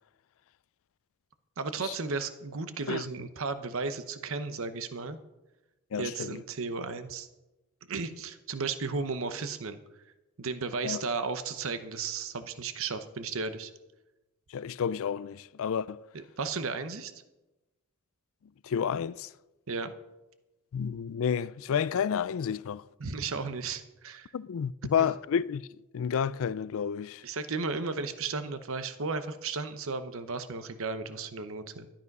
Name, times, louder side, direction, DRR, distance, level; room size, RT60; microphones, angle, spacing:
voice 1, 1.6-5.2 6.0-7.3 7.9-9.8 10.4-13.7 16.1-17.1 19.7-19.9 23.0-24.3 25.0-25.1 27.2-31.9, right 4 dB, 65° right, 0.9 m, -34 dB
voice 2, 5.9-6.4 10.8-11.0 14.5-16.0 18.6-19.3 20.7-22.8 24.3-25.7 25.9-27.2, left 7 dB, 65° left, 0.4 m, -30 dB
12.5 x 10.5 x 5.3 m
head